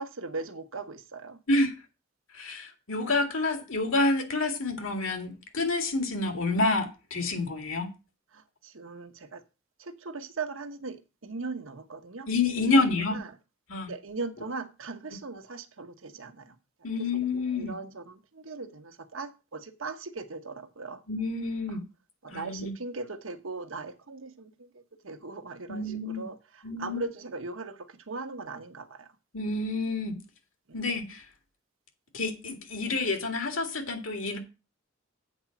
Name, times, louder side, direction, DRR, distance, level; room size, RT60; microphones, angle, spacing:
voice 1, 0.0-1.4 8.3-9.4 9.8-12.3 12.6-13.3 13.9-16.6 17.0-17.2 17.6-21.0 21.7-21.8 22.2-29.1 30.7-30.8, right 3 dB, 80° right, 1.0 m, -39 dB
voice 2, 2.3-7.9 12.3-13.2 13.7-13.9 16.8-17.7 21.1-21.8 22.3-22.7 25.7-26.2 26.6-27.0 29.3-30.2 30.7-31.3 32.1-34.4, left 2 dB, 85° left, 2.2 m, -28 dB
8.0 x 4.9 x 7.1 m
head